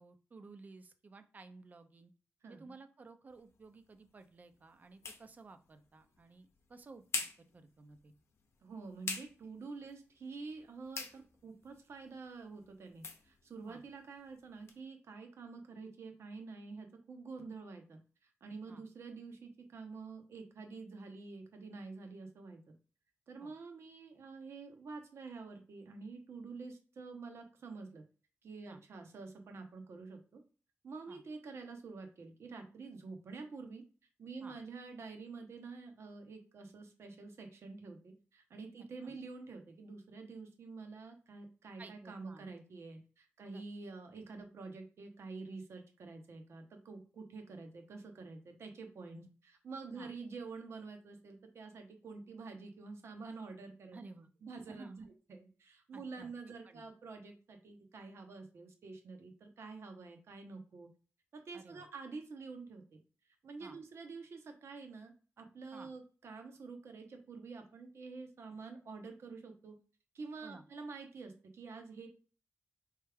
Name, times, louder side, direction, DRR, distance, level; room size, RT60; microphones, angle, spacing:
voice 1, 0.0-2.1 2.5-7.2 7.5-8.1 13.7-13.8 18.7-18.8 23.4-23.5 28.7-28.8 31.1-31.2 34.4-34.6 39.0-39.1 41.8-42.5 43.5-43.6 49.9-50.1 53.9-54.3 54.7-55.1 55.9-56.3 56.6-56.8 61.5-61.8 63.6-63.8 65.7-65.9 70.4-70.6, right 3 dB, 35° right, 9 dB, 0.5 m, -54 dB
voice 2, 2.4-2.7 8.6-22.7 23.3-28.0 28.4-30.4 30.8-33.8 34.2-54.0 54.4-60.9 61.3-62.8 63.4-69.7 70.1-72.1, right 4 dB, 65° right, 4 dB, 1.0 m, -48 dB
sound 1, 3.3-14.8, left 4 dB, 70° left, 0.7 m, -47 dB
4.5 x 3.2 x 3.4 m, 0.38 s
wide cardioid pair, 160°, 5 cm